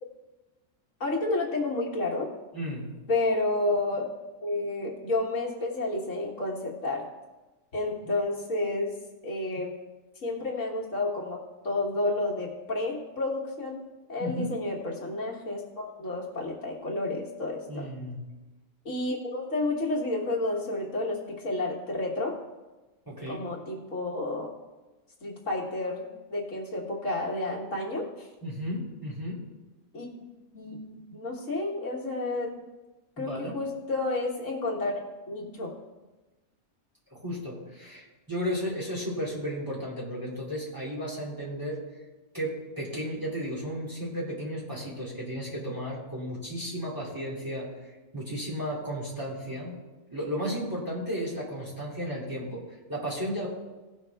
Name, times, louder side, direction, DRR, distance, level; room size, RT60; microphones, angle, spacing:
voice 1, 1.0-2.3 3.1-4.1 4.4-7.0 7.7-8.9 9.2-9.7 10.2-13.8 14.1-17.9 18.9-22.3 23.3-24.5 25.2-28.3 29.9-30.1 30.5-32.7 33.2-35.0 35.3-35.7, left 2 dB, 65° left, -3 dB, 1.9 m, -30 dB
voice 2, 2.5-2.9 14.2-14.5 17.7-18.2 23.1-23.4 28.4-29.4 33.2-33.5 37.1-41.8 42.3-49.7 50.1-52.6 52.9-53.5, equal, 15° right, -5 dB, 2.6 m, -34 dB
17.0 x 5.8 x 3.5 m, 1.2 s
omnidirectional pair, 1.4 m